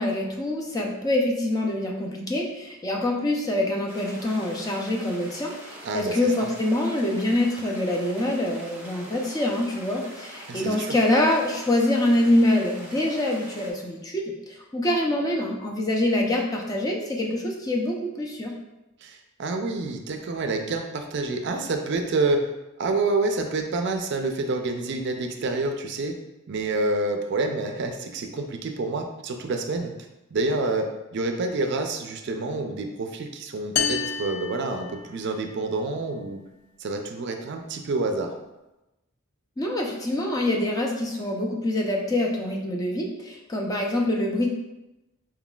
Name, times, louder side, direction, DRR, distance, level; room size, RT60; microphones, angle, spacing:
voice 1, 0.0-18.5 39.6-44.5, left 1 dB, 15° left, -1 dB, 0.5 m, -25 dB
sound 1, 3.9-13.7, equal, 10° right, 0.8 m, -44 dB
voice 2, 5.8-6.5 10.5-11.0 19.0-22.5 22.8-26.2 26.5-29.9 30.3-36.4 36.8-38.3, right 3 dB, 55° right, 5 dB, 0.4 m, -28 dB
sound 2, 33.8-35.5, left 7 dB, 85° left, 0.3 m, -29 dB
4.4 x 3.8 x 2.3 m, 0.98 s
head